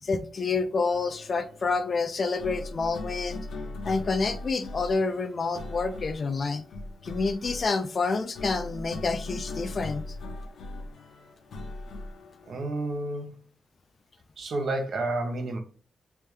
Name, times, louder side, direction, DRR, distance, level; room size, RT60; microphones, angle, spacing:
voice 1, 0.0-3.5 3.8-6.6 7.0-10.2, left 4 dB, 40° left, 0.4 m, -28 dB
sound 1, 0.9-12.6, left 2 dB, 75° left, 0.8 m, -40 dB
voice 2, 12.5-13.4 14.4-15.6, right 2 dB, 60° right, 0.8 m, -30 dB
3.4 x 3.2 x 3.1 m
wide cardioid pair, 145°, 0 cm